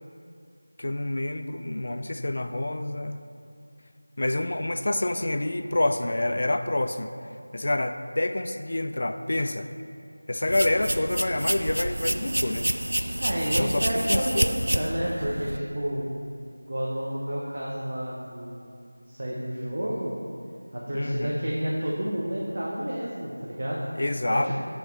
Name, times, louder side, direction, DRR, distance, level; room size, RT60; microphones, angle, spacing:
voice 1, 0.8-3.2 4.2-7.1 7.5-9.7 10.3-12.7 13.0-13.1 13.4-14.4 20.9-21.4 24.0-24.5, left 1 dB, 40° left, 8 dB, 0.4 m, -27 dB
sound 1, 10.5-15.6, right 1 dB, 85° right, 0.5 m, -28 dB
voice 2, 13.2-16.1 16.7-18.7 19.1-20.1 20.7-23.9 24.3-24.5, equal, 40° right, -5 dB, 0.9 m, -30 dB
9.2 x 3.1 x 6.6 m, 2.4 s
figure-of-eight pair, 175°, 0 cm